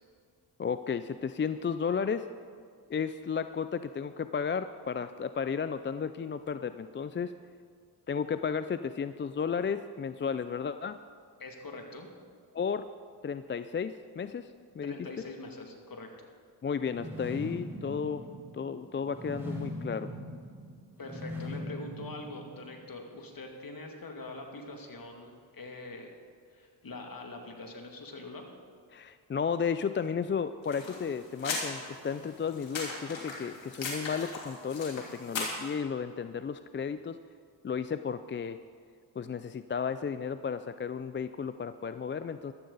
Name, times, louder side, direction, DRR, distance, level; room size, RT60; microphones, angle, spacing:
voice 1, 0.6-2.3 2.9-7.3 8.1-11.0 12.5-12.9 13.2-14.9 16.6-18.3 18.5-20.1 28.9-37.2 37.6-38.6 39.2-42.5, left 6 dB, 25° left, 12 dB, 0.4 m, -33 dB
voice 2, 11.4-12.1 14.8-16.1 21.0-26.1 26.5-28.5, left 2 dB, 45° left, 2 dB, 2.5 m, -43 dB
sound 1, 16.8-22.9, left 1 dB, 5° right, 4.2 m, -41 dB
sound 2, 30.6-35.7, left 3 dB, 70° left, 3.3 m, -38 dB
14.5 x 13.0 x 4.1 m, 2.1 s
supercardioid pair, 55°, 46 cm